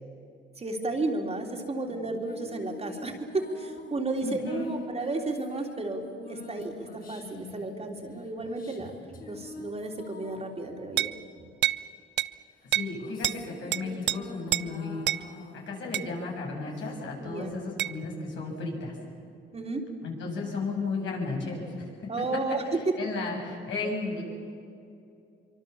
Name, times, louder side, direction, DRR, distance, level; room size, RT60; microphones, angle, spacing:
voice 1, 0.6-6.0 6.3-11.1 17.2-17.6 19.5-19.8 22.1-22.8, right 2 dB, 30° right, 2 dB, 3.4 m, -33 dB
sound 1, 1.9-11.8 12.6-17.3, left 2 dB, 45° left, 5.4 m, -47 dB
voice 2, 4.2-4.7 12.7-15.0 15.7-19.0 20.0-21.9 23.0-24.2, left 3 dB, 70° left, -1 dB, 7.7 m, -34 dB
sound 2, 11.0-11.2 11.6-11.8 12.2-12.3 12.7-12.9 13.2-13.4 13.7-14.2 14.5-14.7 15.1-15.2 15.9-16.1 17.8-18.0, right 12 dB, 60° right, 0.6 m, -27 dB
24.5 x 24.0 x 7.2 m, 2.6 s
cardioid pair, 90°, 20 cm